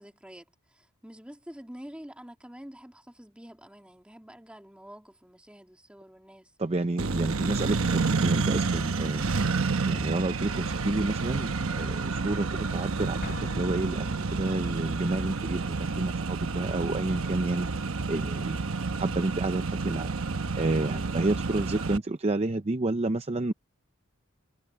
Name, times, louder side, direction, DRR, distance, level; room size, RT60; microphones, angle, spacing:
voice 1, 0.0-6.5, equal, 5° right, 2.3 m, -47 dB
voice 2, 6.6-9.2 9.8-17.7 18.1-18.6 19.0-20.1 20.6-23.5, right 2 dB, 30° right, 0.6 m, -30 dB
Accelerating revving vroom, 7.0-22.0, right 4 dB, 70° right, 1.0 m, -29 dB
Explosion, 13.2-14.8, left 2 dB, 35° left, 0.9 m, -42 dB
head